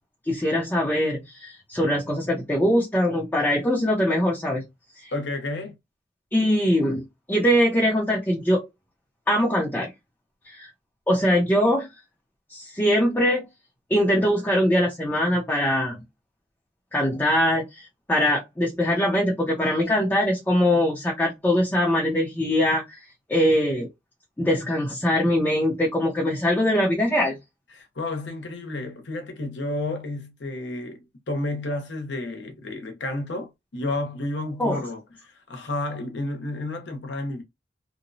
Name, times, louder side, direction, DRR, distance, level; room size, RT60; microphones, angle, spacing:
voice 1, 0.3-4.6 5.0-5.1 6.3-8.7 9.3-9.9 10.4-10.7 11.1-11.9 12.5-13.5 13.9-16.0 16.9-23.0 23.3-23.9 24.4-27.4 34.6-34.8, equal, 10° left, 0.6 m, -22 dB
voice 2, 5.1-5.7 27.7-37.4, left 2 dB, 80° left, 0.7 m, -31 dB
2.9 x 2.0 x 2.5 m
head